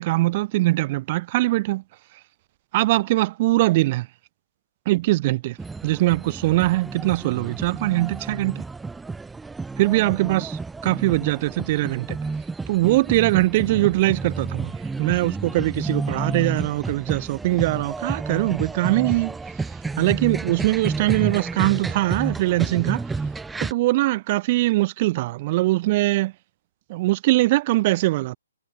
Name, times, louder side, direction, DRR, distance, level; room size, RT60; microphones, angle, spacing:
voice 1, 0.0-1.8 2.7-4.1 4.8-5.6 5.8-8.6 9.8-12.2 12.7-14.7 15.0-19.3 20.0-23.0 23.7-26.3 26.9-28.4, right 18 dB, 35° right, 1.6 m, -22 dB
sound 1, 5.6-23.7, right 4 dB, 5° right, 2.0 m, -31 dB
hypercardioid pair, 150°, 0 cm